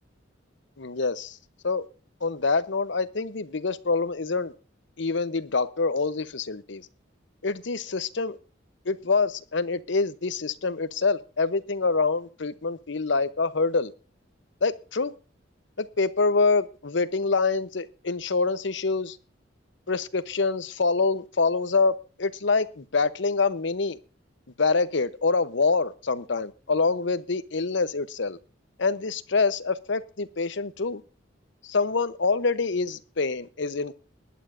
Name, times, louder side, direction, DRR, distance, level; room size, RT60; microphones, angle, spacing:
voice 1, 0.8-1.4 1.6-1.9 2.2-4.5 5.0-6.9 7.4-8.4 8.8-13.9 14.6-15.1 15.8-19.2 19.9-24.0 24.6-28.4 28.8-31.0 31.6-34.0, left 4 dB, 65° left, 0.9 m, -26 dB
20.0 x 11.0 x 2.6 m
head